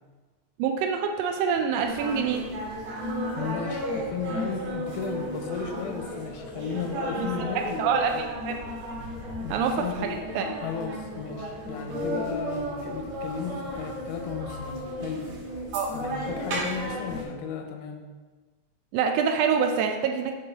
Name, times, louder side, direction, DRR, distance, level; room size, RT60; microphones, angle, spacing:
voice 1, 0.6-2.5 7.2-7.3 7.5-8.6 9.5-10.1 10.3-10.5 15.7-15.9 18.9-20.3, right 6 dB, 85° right, 4 dB, 1.4 m, -26 dB
sound 1, 1.8-17.3, equal, 65° right, 2.5 m, -34 dB
voice 2, 3.4-8.3 9.4-10.2 10.6-15.3 15.9-18.0, left 6 dB, 85° left, 4 dB, 2.1 m, -35 dB
7.7 x 3.9 x 4.0 m, 1.3 s
omnidirectional pair, 3.5 m